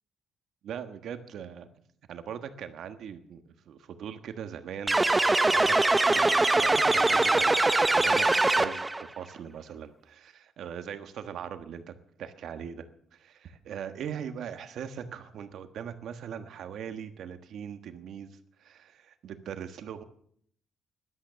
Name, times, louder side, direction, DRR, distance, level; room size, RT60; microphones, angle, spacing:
voice 1, 0.6-1.7 2.1-8.9 9.1-12.8 13.1-18.3 18.6-20.0, right 8 dB, 70° right, 9 dB, 1.4 m, -40 dB
sound 1, 4.9-9.0, right 2 dB, 15° right, 0.7 m, -22 dB
13.5 x 11.5 x 6.8 m, 0.65 s
cardioid pair, 90°, 0 cm